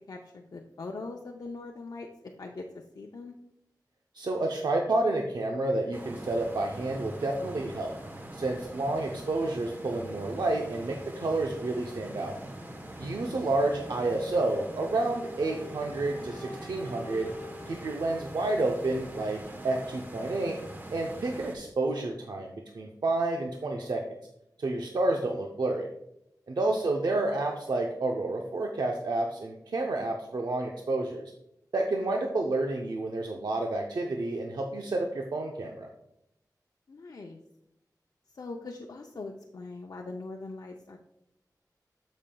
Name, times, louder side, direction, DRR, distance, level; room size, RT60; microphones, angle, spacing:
voice 1, 0.1-2.1 2.4-3.4 13.2-13.3 26.7-26.8 36.9-37.4 38.3-41.0, left 3 dB, 65° left, 0 dB, 0.6 m, -41 dB
voice 2, 4.1-7.9 8.3-12.3 13.0-17.3 17.7-20.6 20.9-24.0 24.6-25.9 26.5-31.3 31.7-35.9, right 2 dB, 75° right, 1 dB, 0.7 m, -30 dB
sound 1, 5.9-21.6, right 1 dB, 30° right, 1.0 m, -43 dB
Wind instrument woodwind instrument, 14.3-19.4, left 1 dB, ahead, 1.9 m, -48 dB
12.5 x 5.3 x 2.3 m, 0.84 s
wide cardioid pair, 95°, 7 cm